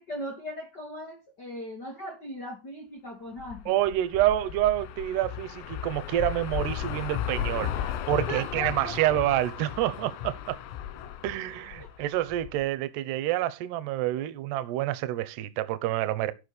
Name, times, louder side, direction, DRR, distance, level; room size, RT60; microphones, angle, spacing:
voice 1, 0.0-3.6 8.3-9.0 11.8-11.9, left 1 dB, 70° left, 0.9 m, -38 dB
sound 1, 3.4-12.6, left 10 dB, 90° left, 4.2 m, -35 dB
voice 2, 3.7-10.6 11.2-16.3, right 14 dB, 75° right, 2.5 m, -28 dB
14.5 x 5.7 x 6.6 m
omnidirectional pair, 5.8 m